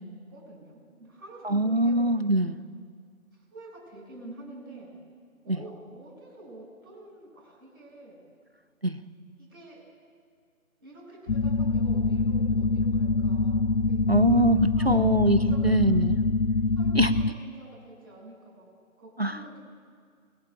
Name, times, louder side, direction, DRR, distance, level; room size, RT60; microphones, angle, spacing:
voice 1, 0.3-2.0 3.5-4.9 5.4-8.2 9.4-9.8 10.8-14.4 14.8-15.0 15.3-15.8 16.7-18.6 19.0-19.6, right 1 dB, 5° right, -13 dB, 2.7 m, -47 dB
voice 2, 1.4-2.6 8.8-9.0 14.1-16.1 17.0-17.1 19.2-19.4, right 1 dB, 50° right, 12 dB, 0.4 m, -23 dB
sound 1, 11.3-17.3, left 3 dB, 60° left, 0.5 m, -25 dB
19.5 x 19.5 x 2.5 m, 2.1 s
figure-of-eight pair, 170°, 43 cm